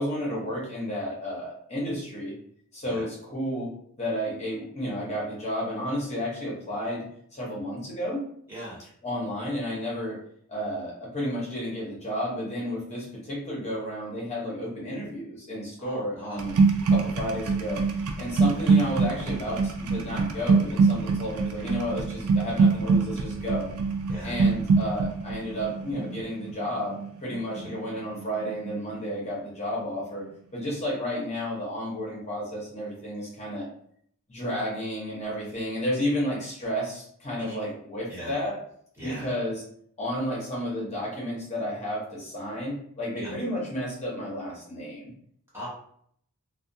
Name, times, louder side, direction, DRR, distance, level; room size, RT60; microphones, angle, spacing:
voice 1, 0.0-2.3 2.7-7.1 7.3-8.2 9.0-10.2 10.5-16.5 16.9-17.8 18.2-23.6 24.2-26.9 27.2-30.2 30.5-33.6 34.3-38.5 39.0-39.6 40.0-45.1, equal, 30° left, -5 dB, 0.8 m, -32 dB
voice 2, 8.5-8.8 15.8-16.5 24.1-24.4 27.5-27.7 37.4-37.7 38.1-38.4 39.0-39.3 43.2-43.3 45.5-45.7, right 1 dB, 10° right, -8 dB, 0.9 m, -40 dB
sound 1, 16.4-28.2 28.5-28.9, right 4 dB, 80° right, 0.4 m, -24 dB
2.4 x 2.2 x 2.6 m, 0.65 s
head